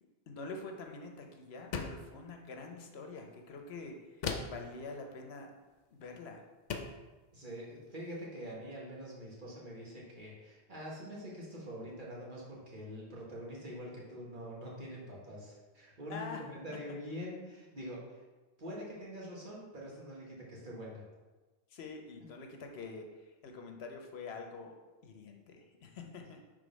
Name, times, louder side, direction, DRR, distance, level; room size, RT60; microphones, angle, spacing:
voice 1, 0.3-5.5 5.9-6.4 16.1-16.5 21.7-24.8 25.0-26.4, left 3 dB, 75° left, 3 dB, 1.0 m, -46 dB
sound 1, 1.7-2.1 4.2-4.7 6.0-6.1 6.7-7.0, left 5 dB, 55° left, 0.5 m, -37 dB
voice 2, 7.3-18.2 18.6-21.1, equal, 50° right, -4 dB, 1.5 m, -45 dB
5.1 x 3.7 x 5.1 m, 1.2 s
omnidirectional pair, 1.1 m